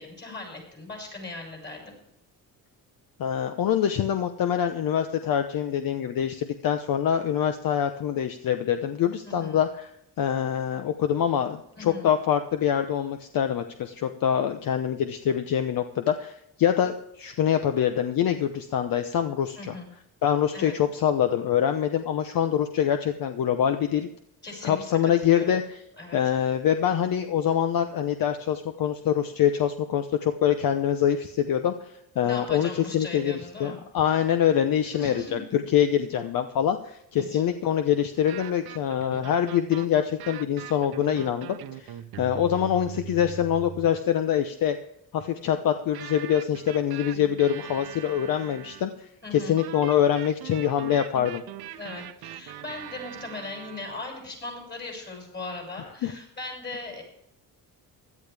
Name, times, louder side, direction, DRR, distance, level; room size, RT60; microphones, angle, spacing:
voice 1, 0.0-1.9 9.2-9.6 11.8-12.1 19.6-19.9 20.5-20.7 24.4-25.6 26.0-26.2 32.2-33.8 34.8-35.4 37.2-37.4 49.2-49.6 51.8-57.0, left 3 dB, 30° left, 0 dB, 6.6 m, -39 dB
voice 2, 3.2-9.9 10.2-19.8 20.2-24.1 24.6-25.6 26.1-31.9 32.2-44.8 45.1-51.4 56.0-56.1, left 9 dB, 65° left, 8 dB, 0.9 m, -25 dB
sound 1, 38.2-44.0 45.9-48.9 49.6-54.0, right 11 dB, 90° right, 0.9 m, -41 dB
16.5 x 12.0 x 3.4 m, 0.76 s
cardioid pair, 135°, 37 cm